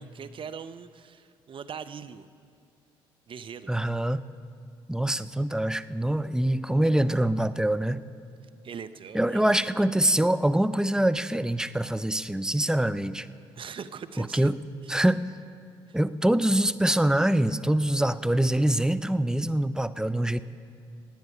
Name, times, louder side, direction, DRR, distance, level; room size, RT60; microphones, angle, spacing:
voice 1, 0.0-2.3 3.3-3.7 8.6-9.5 13.5-14.5 15.9-16.0, right 7 dB, 45° right, 12 dB, 0.6 m, -41 dB
voice 2, 3.7-4.2 4.9-8.0 9.1-13.3 14.2-14.6 14.9-15.2 15.9-20.4, right 1 dB, 5° right, 14 dB, 0.5 m, -24 dB
17.5 x 9.1 x 5.5 m, 2.3 s
hypercardioid pair, 55°, 12 cm